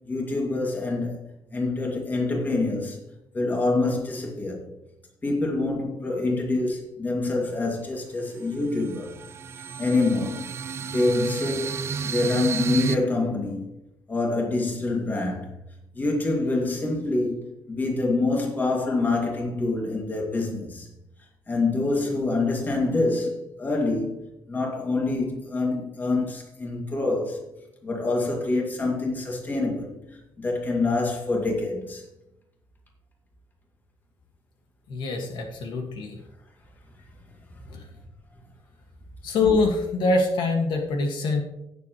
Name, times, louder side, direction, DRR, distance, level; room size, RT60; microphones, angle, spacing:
voice 1, 0.1-1.2 1.5-3.0 3.3-4.7 5.2-9.1 9.8-10.5 10.9-13.7 14.1-15.5 15.9-20.9 21.5-27.4 27.8-30.0 30.4-32.0 37.5-37.6, left 2 dB, 25° left, 2.3 m, -26 dB
sound 1, 7.5-7.6 8.0-13.0, right 6 dB, 35° right, 0.5 m, -32 dB
voice 2, 34.9-36.2 37.7-37.8 39.2-41.4, left 3 dB, 75° left, 1.9 m, -24 dB
17.0 x 7.2 x 3.1 m
cardioid pair, 160°, 8 cm